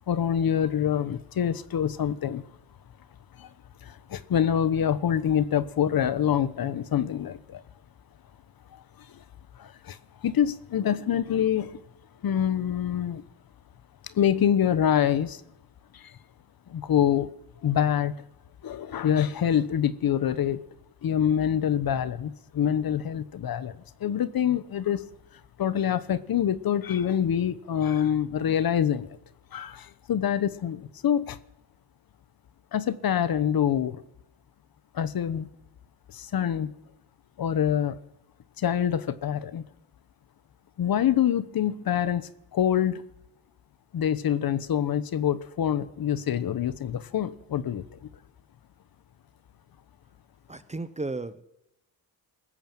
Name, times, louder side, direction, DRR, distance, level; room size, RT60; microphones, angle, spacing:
voice 1, 0.1-2.4 3.4-3.5 3.8-7.6 8.7-8.8 9.1-9.2 9.6-11.8 12.2-13.2 14.0-15.4 15.9-16.1 16.7-17.3 17.6-18.1 18.6-20.6 21.0-25.0 25.6-29.1 29.5-31.4 32.7-34.0 34.9-35.5 36.1-36.7 37.4-38.0 38.6-39.6 40.8-43.0 43.9-47.8, left 9 dB, 55° left, 1.2 m, -26 dB
voice 2, 50.5-51.4, right 3 dB, 15° right, 1.0 m, -34 dB
21.5 x 13.5 x 9.1 m
cardioid pair, 125°, 42 cm